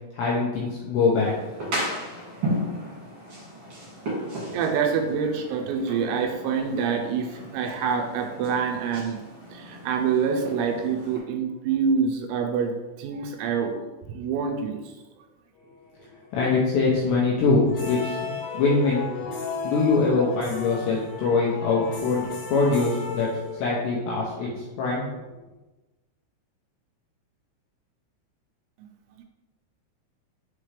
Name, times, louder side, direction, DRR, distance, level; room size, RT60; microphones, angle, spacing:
voice 1, 0.1-1.4 16.0-16.1 16.3-19.0 19.6-23.3 23.5-25.0, left 4 dB, 80° left, -4 dB, 2.5 m, -23 dB
sound 1, 1.1-11.2, equal, 45° right, 1.8 m, -35 dB
voice 2, 4.5-9.2 9.5-14.8, right 6 dB, 85° right, 3 dB, 3.4 m, -26 dB
sound 2, 17.6-23.9, left 4 dB, 60° left, 3.2 m, -34 dB
8.3 x 3.8 x 3.3 m, 1.1 s
omnidirectional pair, 6.0 m